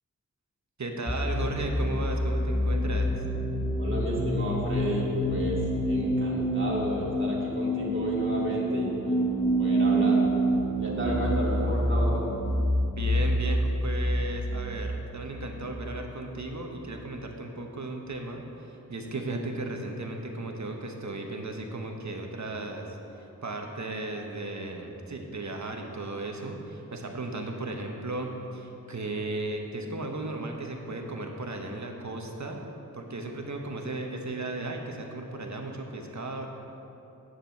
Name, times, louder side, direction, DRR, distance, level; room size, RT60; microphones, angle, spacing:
voice 1, 0.8-3.2 12.9-32.6 32.9-36.5, right 2 dB, 55° right, 2 dB, 1.2 m, -35 dB
sound 1, 1.1-16.6, right 1 dB, 15° left, 1.1 m, -27 dB
voice 2, 3.8-9.2 9.6-10.3 10.8-12.3, equal, 35° right, -5 dB, 2.5 m, -32 dB
9.4 x 6.7 x 5.9 m, 3.0 s
cardioid pair, 45°, 34 cm